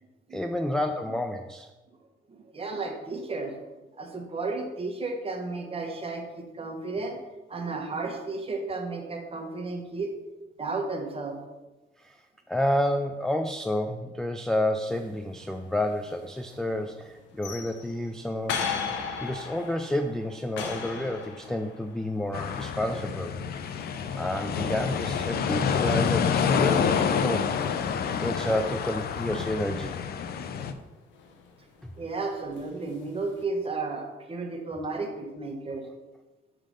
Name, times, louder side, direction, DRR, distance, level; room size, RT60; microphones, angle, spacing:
voice 1, 0.3-1.7 12.0-18.6 19.2-23.3 23.8-23.9 24.2-27.5 28.2-29.9 31.8-31.9, left 1 dB, 5° left, 4 dB, 0.3 m, -30 dB
voice 2, 2.3-3.6 4.0-7.2 7.5-10.1 10.6-11.4 32.0-35.9, right 3 dB, 30° right, 2 dB, 1.2 m, -33 dB
sound 1, 14.9-33.4, left 6 dB, 90° left, 0.8 m, -41 dB
sound 2, 22.3-30.7, left 7 dB, 55° left, 0.5 m, -28 dB
6.2 x 3.8 x 5.1 m, 1.1 s
cardioid pair, 95°, 19 cm